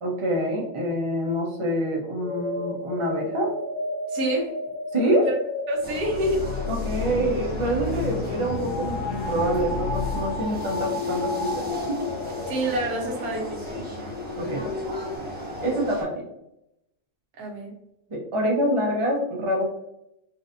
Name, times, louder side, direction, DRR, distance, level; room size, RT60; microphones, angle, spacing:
voice 1, 0.0-3.5 4.9-5.3 6.7-12.0 14.4-14.6 15.6-16.2 18.1-19.7, equal, 55° right, -2 dB, 0.3 m, -26 dB
sound 1, 1.9-15.2, left 1 dB, 65° left, 1.0 m, -34 dB
voice 2, 4.1-4.5 5.2-5.3 5.7-6.5 12.5-13.9 17.4-17.7, right 1 dB, 70° right, -1 dB, 1.4 m, -27 dB
sound 2, 5.8-12.2, left 5 dB, 90° left, 1.2 m, -33 dB
sound 3, 5.8-16.0, left 3 dB, 10° right, 0.6 m, -35 dB
3.8 x 2.5 x 2.6 m, 0.83 s
omnidirectional pair, 1.7 m